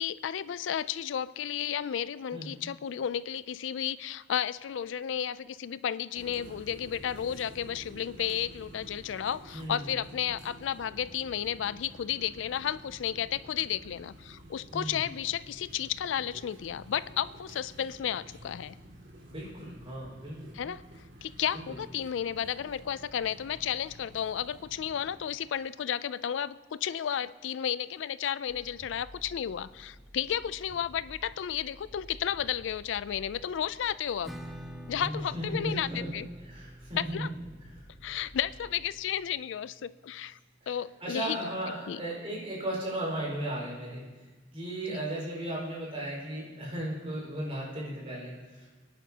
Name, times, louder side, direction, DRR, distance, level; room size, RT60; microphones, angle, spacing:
voice 1, 0.0-18.7 20.5-20.8 21.2-34.4 34.9-36.3 37.0-37.3 38.0-40.4 40.7-41.4 41.9-42.0 44.9-45.1, left 9 dB, 80° left, 17 dB, 0.4 m, -33 dB
sound 1, 6.1-25.3, right 1 dB, 80° right, 2.7 m, -51 dB
voice 2, 9.5-9.9 14.7-15.0 19.3-20.5 34.9-36.1 36.4-37.3 40.6-40.7 41.0-44.0 44.5-48.7, right 1 dB, 30° right, -5 dB, 4.8 m, -36 dB
sound 2, 28.5-38.7, equal, 30° left, 4.4 m, -52 dB
Acoustic guitar / Strum, 34.2-39.7, equal, ahead, 0.7 m, -48 dB
23.0 x 10.5 x 2.9 m, 1.3 s
head